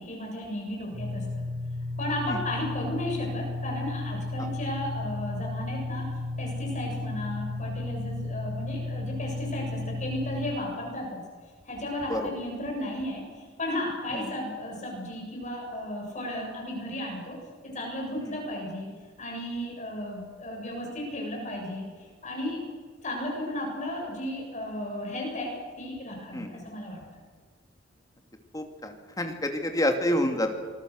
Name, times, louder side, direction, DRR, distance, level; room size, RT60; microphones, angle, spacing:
voice 1, 0.0-1.4 2.0-11.2 11.6-17.4 17.6-18.9 19.2-22.6 23.0-27.0, left 1 dB, 40° left, 0 dB, 7.5 m, -34 dB
sound 1, 0.9-10.5, left 2 dB, 90° right, 7.4 m, -33 dB
voice 2, 28.5-30.5, left 1 dB, 20° left, 4 dB, 2.6 m, -28 dB
26.0 x 21.5 x 6.7 m, 1.5 s
head